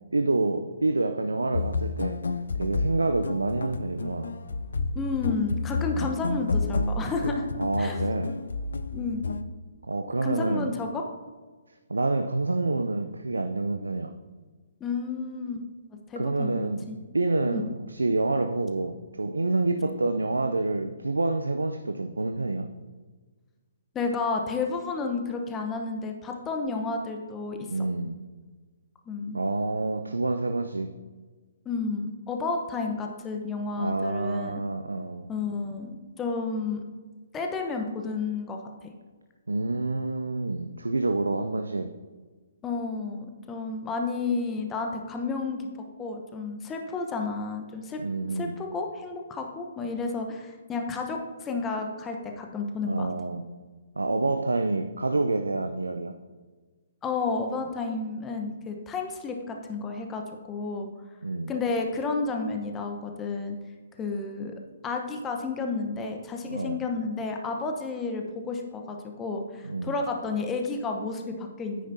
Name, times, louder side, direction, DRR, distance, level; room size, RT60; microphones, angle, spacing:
voice 1, 0.1-2.2 2.6-4.3 7.6-8.4 9.9-10.7 11.9-14.1 16.1-16.9 17.1-22.7 27.7-28.2 29.3-30.9 33.8-35.3 39.5-41.9 48.0-48.5 52.8-53.5 54.0-56.2 61.2-61.5 66.5-66.8 69.6-69.9, right 2 dB, 80° right, 7 dB, 0.5 m, -27 dB
sound 1, 1.5-9.4, left 3 dB, 70° left, 0.5 m, -30 dB
voice 2, 4.9-7.5 7.8-8.0 8.9-9.3 10.2-11.0 14.8-15.6 16.1-17.0 17.5-17.6 23.9-27.6 29.1-29.4 31.6-34.6 35.3-36.8 37.3-38.9 42.6-45.6 46.0-48.0 48.3-53.1 57.0-60.9 61.5-63.6 64.0-64.5 64.8-71.9, left 4 dB, 15° left, 3 dB, 0.9 m, -31 dB
9.4 x 9.4 x 2.7 m, 1.4 s
figure-of-eight pair, 130°, 0 cm